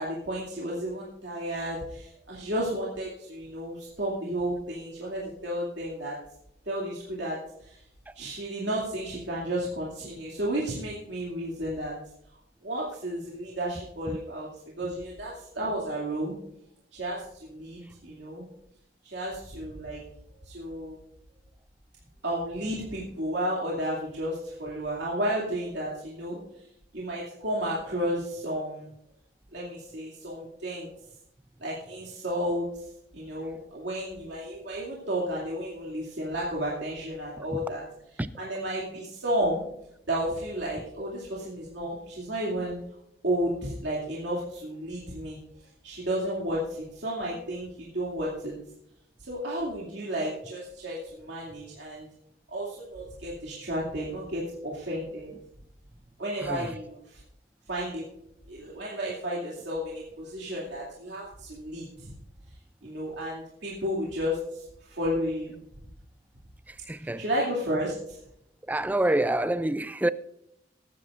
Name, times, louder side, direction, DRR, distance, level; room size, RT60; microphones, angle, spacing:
voice 1, 0.0-6.2 6.7-7.8 8.2-12.0 12.6-14.5 14.8-16.4 16.9-18.5 19.0-20.0 20.4-21.0 22.2-26.4 26.9-28.9 29.5-30.9 31.6-37.8 38.4-39.7 40.1-42.8 43.2-45.4 45.8-48.5 49.2-52.1 52.5-55.3 56.2-57.2 57.7-58.0 58.5-62.1 62.8-65.6 67.2-68.2, equal, 70° right, 2.5 m, -32 dB
voice 2, 56.4-56.8 66.7-67.2 68.7-70.1, right 1 dB, 10° right, 0.3 m, -27 dB
20.0 x 9.6 x 2.5 m
head